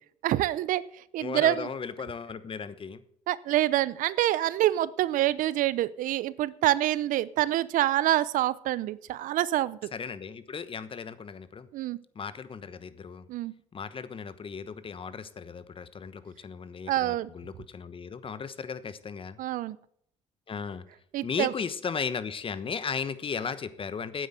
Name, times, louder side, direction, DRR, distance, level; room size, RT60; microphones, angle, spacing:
voice 1, 0.2-1.7 3.3-9.9 11.7-12.0 13.3-13.5 16.9-17.3 19.4-19.8 21.1-21.5, right 14 dB, 70° right, 19 dB, 0.6 m, -26 dB
voice 2, 1.2-3.0 9.9-11.7 12.1-13.3 13.7-19.4 20.5-20.8 21.2-24.3, left 6 dB, 40° left, 14 dB, 1.1 m, -36 dB
9.3 x 8.1 x 8.0 m, 0.69 s
supercardioid pair, 75°, 14 cm